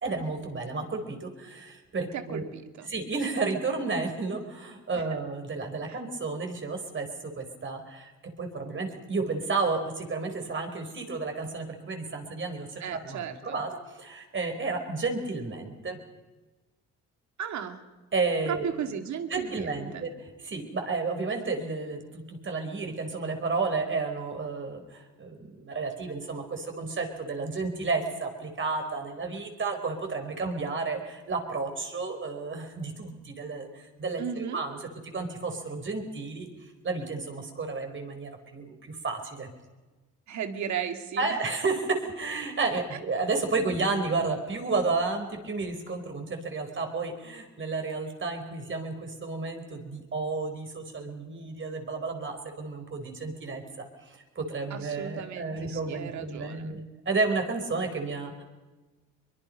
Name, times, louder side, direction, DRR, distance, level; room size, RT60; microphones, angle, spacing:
voice 1, 0.0-2.4 2.9-8.1 8.4-16.0 18.1-18.7 19.3-20.1 20.4-34.8 35.1-36.5 36.8-39.5 41.2-56.8 57.0-58.4, right 3 dB, 40° right, 4 dB, 4.6 m, -32 dB
voice 2, 2.1-2.9 5.9-6.0 12.8-13.6 17.4-17.8 18.5-20.0 34.2-34.6 40.3-41.2 42.9-43.0 54.7-56.8, right 8 dB, 70° right, 7 dB, 2.2 m, -35 dB
23.0 x 22.5 x 5.4 m, 1.2 s
cardioid pair, 90°, 30 cm